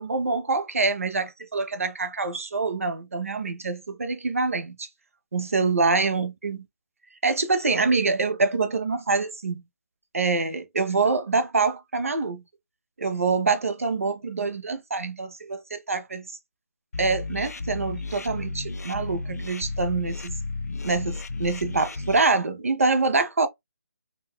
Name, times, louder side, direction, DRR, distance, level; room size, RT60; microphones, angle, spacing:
voice 1, 0.0-4.9 5.3-6.7 7.2-9.6 10.1-12.4 13.0-16.3 17.0-20.4 20.8-23.5, right 4 dB, 45° right, 0.6 m, -25 dB
sound 1, 16.9-22.3, left 3 dB, 55° left, 0.4 m, -33 dB
3.8 x 2.2 x 2.2 m
hypercardioid pair, 175°, 10 cm